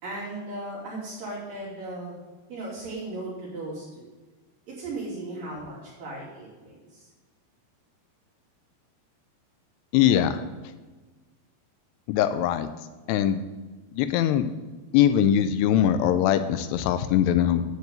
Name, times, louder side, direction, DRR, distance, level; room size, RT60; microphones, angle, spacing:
voice 1, 0.0-2.2 2.5-4.1 4.8-7.0, right 2 dB, 55° right, -7 dB, 4.1 m, -36 dB
voice 2, 9.9-10.4 12.1-12.7 13.1-13.4 13.9-14.5 14.9-17.6, left 10 dB, 85° left, 10 dB, 2.4 m, -21 dB
9.4 x 4.8 x 7.7 m, 1.3 s
omnidirectional pair, 5.2 m